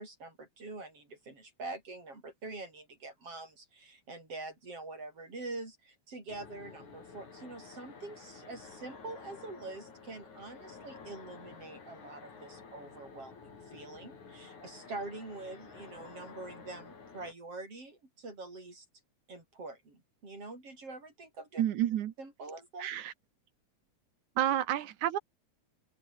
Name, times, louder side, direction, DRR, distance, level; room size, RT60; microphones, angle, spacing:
voice 1, 0.0-18.9 19.3-21.6 22.2-22.9, right 2 dB, 50° right, 9.0 m, -45 dB
sound 1, 6.3-17.3, left 5 dB, 80° left, 6.0 m, -51 dB
voice 2, 21.6-22.1 22.8-23.1 24.4-25.2, right 12 dB, 85° right, 2.7 m, -30 dB
omnidirectional pair, 3.3 m